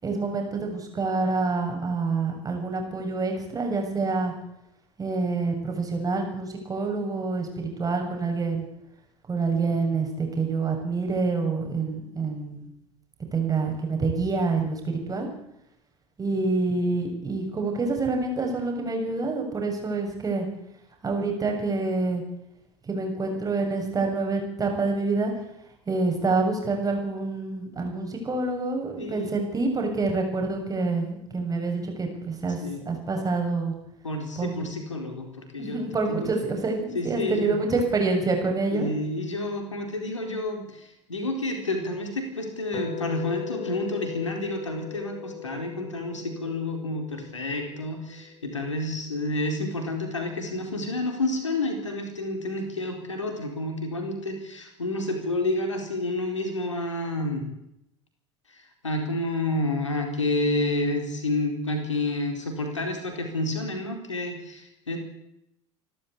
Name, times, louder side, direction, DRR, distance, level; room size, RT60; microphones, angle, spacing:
voice 1, 0.0-4.3 5.0-8.7 9.3-12.7 13.3-15.3 16.2-20.5 21.0-22.2 22.9-25.3 25.9-32.6 32.9-33.7 34.4-34.6 35.6-38.9, right 3 dB, 25° right, 3 dB, 7.2 m, -27 dB
voice 2, 29.0-29.3 32.6-32.8 34.0-35.8 36.1-36.3 36.9-37.6 38.7-57.5 58.5-65.0, left 2 dB, 80° left, 4 dB, 4.3 m, -29 dB
sound 1, 42.7-48.8, left 11 dB, 45° left, 2.3 m, -39 dB
27.5 x 13.0 x 8.4 m, 0.82 s
figure-of-eight pair, 70°, 15 cm